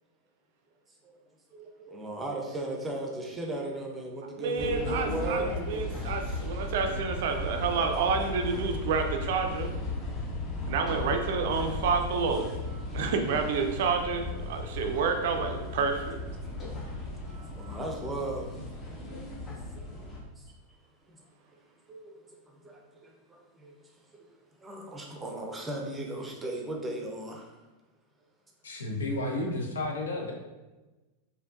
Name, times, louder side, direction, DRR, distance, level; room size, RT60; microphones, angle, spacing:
voice 1, 1.5-5.6 17.5-18.6 19.7-20.1 20.4-20.5 21.9-22.1 22.5-23.7 24.6-27.6, right 2 dB, 15° right, 0 dB, 0.6 m, -36 dB
voice 2, 4.4-9.7 10.7-12.5 12.9-16.2, right 5 dB, 55° right, 4 dB, 0.4 m, -29 dB
sound 1, 4.6-20.2, left 2 dB, 20° left, 0.7 m, -36 dB
voice 3, 28.6-30.3, left 2 dB, 70° left, 1 dB, 0.6 m, -32 dB
4.3 x 2.7 x 2.5 m, 1.1 s
figure-of-eight pair, 90°, 0 cm